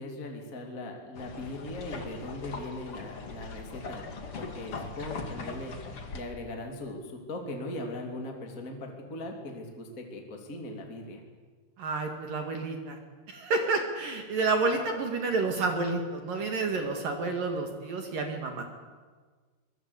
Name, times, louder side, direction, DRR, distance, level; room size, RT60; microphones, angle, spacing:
voice 1, 0.0-5.7 6.1-11.2, left 2 dB, 25° left, 2 dB, 2.3 m, -39 dB
sound 1, 1.2-6.2, left 4 dB, 45° left, 2.0 m, -40 dB
voice 2, 11.8-13.0 13.3-18.6, right 3 dB, 55° right, 4 dB, 3.3 m, -30 dB
24.0 x 22.0 x 8.3 m, 1.5 s
omnidirectional pair, 5.5 m